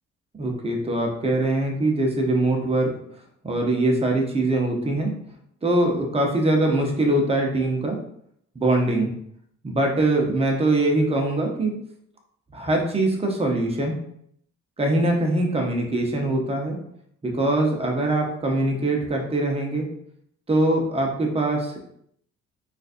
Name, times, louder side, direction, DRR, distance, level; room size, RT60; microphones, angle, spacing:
voice 1, 0.4-2.9 3.4-5.1 5.6-8.0 8.5-9.1 9.6-11.7 12.5-13.9 14.8-16.8 17.2-19.9 20.5-21.8, right 2 dB, 20° right, 1 dB, 0.8 m, -22 dB
3.8 x 2.5 x 2.5 m, 0.68 s
cardioid pair, 90°, 30 cm